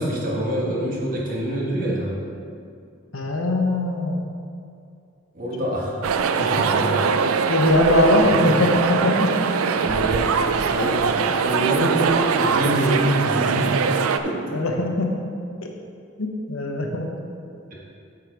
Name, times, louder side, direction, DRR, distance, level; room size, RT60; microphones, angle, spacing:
voice 1, 0.0-2.1 5.3-6.0 6.3-7.2 8.1-8.2 9.7-10.3 10.6-11.0 11.4-14.0 14.2-14.3 17.7-17.8, right 1 dB, 40° right, -4 dB, 1.5 m, -25 dB
voice 2, 3.1-4.3 6.3-6.6 7.5-9.3 9.6-9.7 10.8-10.9 14.5-15.1 16.2-17.1, left 1 dB, 80° left, 2 dB, 0.9 m, -21 dB
sound 1, 6.0-14.2, right 6 dB, 90° right, 0.4 m, -22 dB
8.7 x 4.9 x 4.6 m, 2.4 s
head